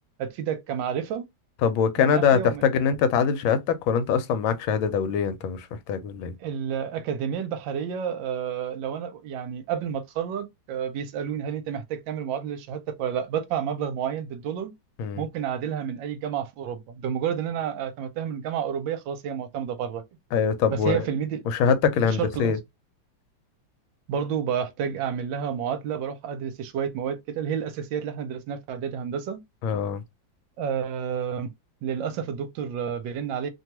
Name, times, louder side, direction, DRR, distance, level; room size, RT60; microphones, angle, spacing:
voice 1, 0.2-1.2 2.0-2.6 6.4-14.7 15.2-20.0 20.7-21.4 22.0-22.5 24.1-29.4 30.6-31.5 31.8-33.5, right 8 dB, 75° right, 1.3 m, -30 dB
voice 2, 1.6-6.3 15.0-15.2 20.3-21.1 21.5-22.6 29.6-30.0, left 6 dB, 85° left, 1.4 m, -23 dB
3.1 x 2.3 x 2.9 m
omnidirectional pair, 2.2 m